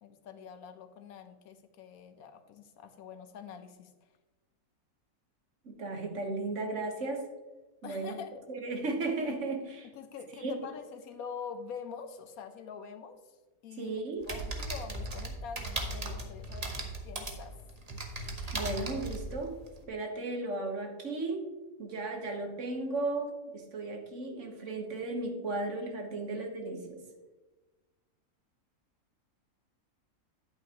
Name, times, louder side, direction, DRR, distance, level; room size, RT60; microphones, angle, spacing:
voice 1, 0.0-3.9 7.8-8.4 9.9-13.2 13.6-13.9 14.3-17.5, left 6 dB, 75° left, 9 dB, 1.2 m, -45 dB
voice 2, 5.6-7.3 7.8-8.2 8.5-9.9 10.4-10.5 13.8-14.2 18.5-19.5 19.9-21.5 21.8-27.0, right 2 dB, 55° right, 3 dB, 1.4 m, -35 dB
sound 1, 14.2-19.8, right 2 dB, 30° right, 0.9 m, -38 dB
10.0 x 8.6 x 2.9 m, 1.2 s
omnidirectional pair, 1.5 m